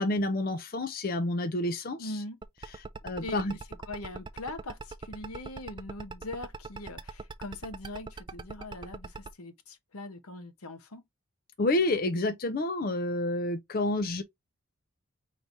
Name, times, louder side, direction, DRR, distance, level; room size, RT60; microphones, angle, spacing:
voice 1, 0.0-2.2 3.0-3.5 11.6-14.2, left 2 dB, 40° left, 0.5 m, -29 dB
voice 2, 2.0-2.4 3.2-3.6 3.9-11.0, left 2 dB, 80° left, 1.0 m, -41 dB
sound 1, 2.4-9.3, right 4 dB, 20° right, 0.3 m, -40 dB
4.8 x 3.3 x 2.6 m
head